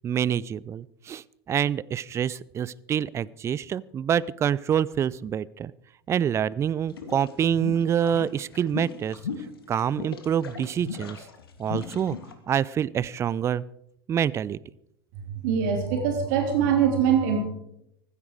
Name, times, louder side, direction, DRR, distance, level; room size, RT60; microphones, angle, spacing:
voice 1, 0.0-5.7 6.1-9.2 9.7-11.2 11.6-12.2 12.5-13.6 14.1-14.6, right 9 dB, 20° right, 22 dB, 0.4 m, -26 dB
sound 1, 6.9-12.3, left 6 dB, 70° left, 2.0 m, -37 dB
voice 2, 15.3-17.4, right 7 dB, 50° right, 3 dB, 3.7 m, -23 dB
15.5 x 13.5 x 4.8 m, 0.76 s
figure-of-eight pair, 80°, 13 cm